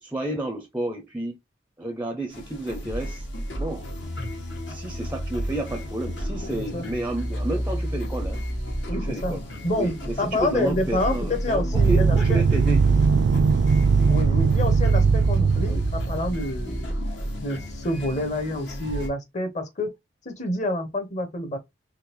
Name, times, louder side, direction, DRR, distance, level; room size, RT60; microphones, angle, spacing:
voice 1, 0.0-1.4 1.8-3.3 3.6-3.9 4.7-8.4 8.9-9.4 9.7-12.8 15.6-15.9, right 2 dB, 10° right, 0.5 m, -31 dB
sound 1, 2.3-19.1, equal, 75° left, 1.6 m, -32 dB
voice 2, 6.4-6.8 8.9-9.3 9.6-9.9 10.2-12.4 14.1-16.9 17.4-19.9 20.2-21.6, left 1 dB, 40° left, 1.0 m, -28 dB
sound 2, 11.7-16.3, right 5 dB, 70° right, 0.3 m, -19 dB
3.8 x 3.2 x 2.9 m
head